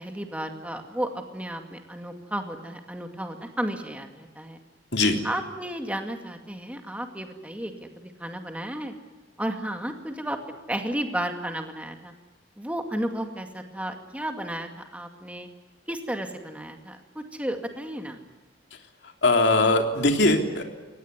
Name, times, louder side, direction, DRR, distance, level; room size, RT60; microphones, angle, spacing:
voice 1, 0.0-4.6 5.2-8.9 9.4-10.4 10.7-12.1 12.6-15.5 15.9-18.2, right 1 dB, 5° right, 5 dB, 2.2 m, -33 dB
voice 2, 18.7-20.6, left 2 dB, 65° left, 4 dB, 3.3 m, -22 dB
24.0 x 18.5 x 9.5 m, 1.3 s
head